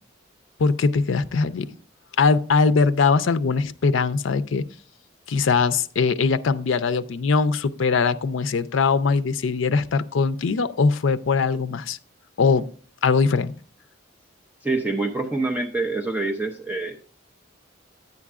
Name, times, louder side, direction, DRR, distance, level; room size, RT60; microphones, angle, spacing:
voice 1, 0.6-1.8 2.2-4.6 5.3-12.0 12.4-12.7 13.0-13.5, left 4 dB, 80° left, 0.4 m, -21 dB
voice 2, 14.6-17.0, right 3 dB, 10° right, 0.6 m, -26 dB
10.5 x 8.3 x 2.4 m
head